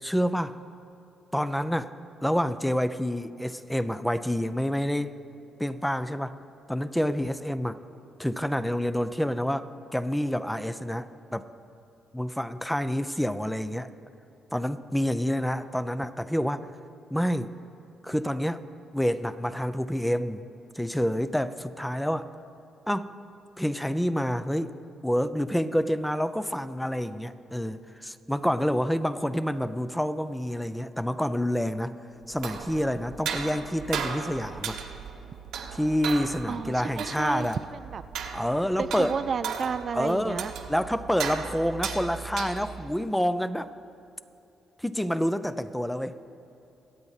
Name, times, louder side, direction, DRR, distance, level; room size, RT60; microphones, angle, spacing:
voice 1, 0.0-0.5 1.3-1.9 2.2-5.1 5.6-6.4 6.7-7.8 8.2-11.5 12.1-13.9 14.5-16.7 17.1-17.5 18.0-18.6 18.9-20.5 20.8-22.3 22.9-23.1 23.6-24.7 25.0-32.0 32.3-34.8 35.7-37.6 38.3-39.1 39.9-40.4 40.7-43.7 44.8-46.2, equal, 5° left, 12 dB, 0.5 m, -28 dB
sound 1, 32.2-42.9, right 6 dB, 75° right, 1.1 m, -36 dB
voice 2, 36.5-38.0 38.8-40.5, right 6 dB, 50° right, 12 dB, 0.3 m, -32 dB
23.5 x 8.5 x 4.1 m, 2.8 s
cardioid pair, 90°, 0 cm